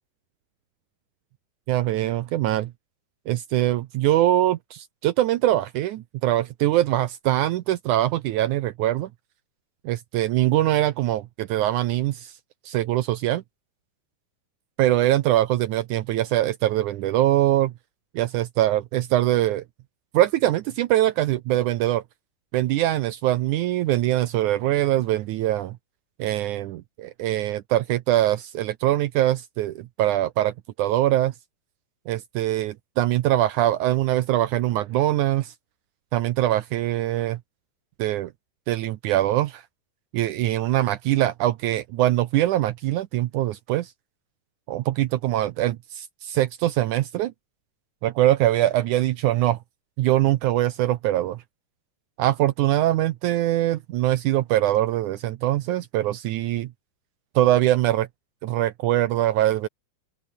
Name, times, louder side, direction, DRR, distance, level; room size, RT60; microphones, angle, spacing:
voice 1, 1.7-2.7 3.3-9.1 9.9-12.3 12.7-13.4 14.8-17.7 18.2-19.6 20.1-22.0 22.5-25.8 26.2-30.5 30.8-31.3 32.1-35.5 36.1-37.4 38.0-38.3 38.7-39.6 40.1-43.9 44.7-47.3 48.0-49.6 50.0-51.4 52.2-56.7 57.4-58.1 58.4-59.7, right 14 dB, 85° right, 1.7 m, -23 dB
open air
omnidirectional pair, 4.6 m